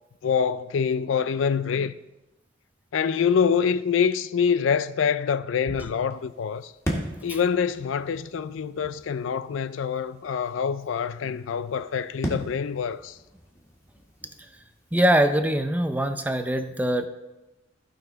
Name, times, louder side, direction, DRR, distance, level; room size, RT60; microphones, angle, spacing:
voice 1, 0.2-2.0 2.9-6.7 7.2-13.2, left 6 dB, 80° left, 0.4 m, -25 dB
sound 1, 6.1-15.3, equal, 15° left, 1.9 m, -39 dB
voice 2, 14.9-17.1, right 1 dB, 10° right, 0.6 m, -22 dB
16.0 x 5.5 x 3.5 m
head